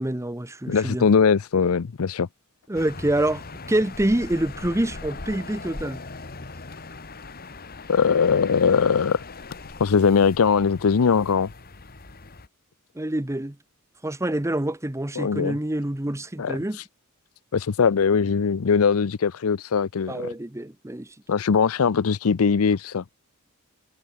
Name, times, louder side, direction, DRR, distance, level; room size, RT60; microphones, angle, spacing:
voice 1, 0.0-1.1 2.7-3.4 3.7-6.0 12.9-13.6 14.0-16.8 20.1-21.1, right 1 dB, 15° right, 0.9 m, -26 dB
voice 2, 0.7-2.3 7.9-9.2 9.8-11.5 15.2-15.6 16.4-16.9 17.5-20.3 21.3-23.0, left 6 dB, 80° left, 0.5 m, -21 dB
sound 1, 2.7-12.5, left 3 dB, 45° left, 1.8 m, -40 dB
head